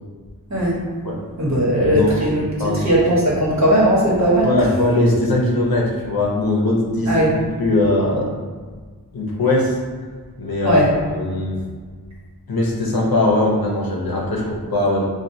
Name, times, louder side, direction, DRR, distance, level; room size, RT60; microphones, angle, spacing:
voice 1, 0.5-0.8 1.4-2.5 2.8-4.5 7.1-7.3 10.6-10.9, equal, 45° right, -5 dB, 1.1 m, -17 dB
voice 2, 1.5-2.2 2.6-2.9 4.4-7.2 7.6-8.3 9.1-9.8 10.4-11.6 12.5-15.1, left 2 dB, 65° left, -3 dB, 0.8 m, -20 dB
4.4 x 2.4 x 2.7 m, 1.5 s
wide cardioid pair, 65°, 38 cm